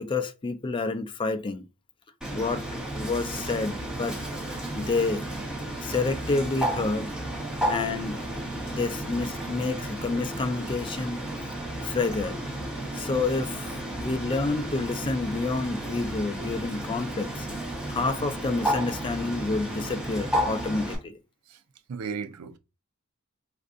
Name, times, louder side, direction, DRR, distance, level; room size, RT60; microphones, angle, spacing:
voice 1, 0.0-1.7 2.3-2.6 2.9-4.2 4.8-5.3 5.8-7.1 7.7-8.2 8.6-11.2 11.8-12.4 12.9-21.2, left 3 dB, 25° left, 0.4 m, -29 dB
Bird, 2.2-21.0, right 1 dB, 5° right, 1.0 m, -32 dB
voice 2, 21.9-22.6, right 6 dB, 85° right, 0.5 m, -36 dB
4.3 x 2.6 x 2.5 m
head